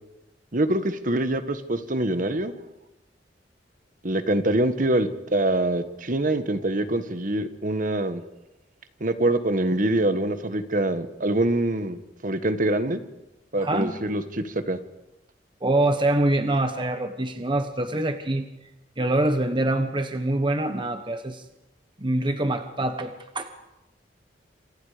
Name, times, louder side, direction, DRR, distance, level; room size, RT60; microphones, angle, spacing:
voice 1, 0.5-2.5 4.0-8.2 9.0-12.0 12.2-13.0 13.5-14.8, right 1 dB, 50° right, 10 dB, 1.5 m, -24 dB
voice 2, 13.6-13.9 15.6-18.5 19.0-21.4 22.0-23.5, right 1 dB, 25° right, 7 dB, 1.1 m, -25 dB
28.0 x 27.0 x 5.1 m, 0.97 s
head